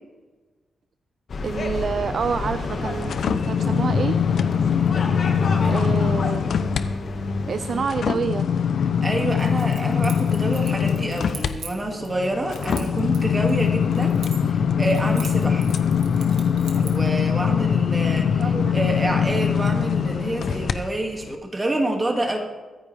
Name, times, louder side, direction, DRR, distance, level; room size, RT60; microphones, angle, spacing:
sound 1, 1.3-7.9, left 3 dB, 45° left, 1.8 m, -28 dB
voice 1, 1.4-4.2 5.7-6.4 7.4-8.5 18.4-18.8, right 6 dB, 50° right, 11 dB, 0.4 m, -27 dB
sound 2, 2.2-6.8 7.2-20.7 21.2-21.4, left 7 dB, 60° left, 0.8 m, -23 dB
voice 2, 5.6-6.0 9.0-14.1 14.4-15.7 16.7-22.4, right 1 dB, 20° right, 1 dB, 2.3 m, -28 dB
Keys jangling, 9.4-12.1 12.5-14.6 14.8-17.1, right 6 dB, 90° right, 2.1 m, -41 dB
24.0 x 10.0 x 3.5 m, 1.3 s
wide cardioid pair, 150°, 0 cm